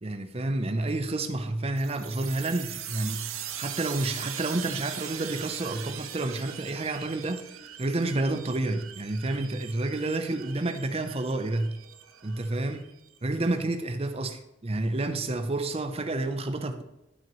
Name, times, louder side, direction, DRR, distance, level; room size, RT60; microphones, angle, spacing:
voice 1, 0.0-7.4 7.8-11.8 12.2-12.9 13.2-16.8, right 2 dB, 30° right, 0.6 m, -30 dB
sound 1, 1.8-13.2, right 9 dB, 85° right, 0.7 m, -40 dB
12.0 x 6.0 x 3.1 m
head